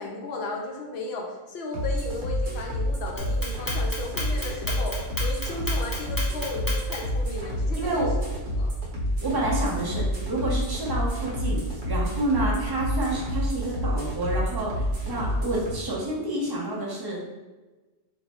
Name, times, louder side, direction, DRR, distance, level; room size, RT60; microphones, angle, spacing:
voice 1, 0.0-8.1 8.6-8.7, left 3 dB, 70° left, 1 dB, 0.8 m, -35 dB
sound 1, 1.7-15.7, equal, 75° right, 1.1 m, -28 dB
Clock, 3.2-7.2, left 1 dB, 25° left, 0.6 m, -33 dB
voice 2, 7.8-8.1 9.2-17.2, right 2 dB, 25° right, -4 dB, 0.6 m, -29 dB
2.7 x 2.1 x 4.0 m, 1.2 s
omnidirectional pair, 1.1 m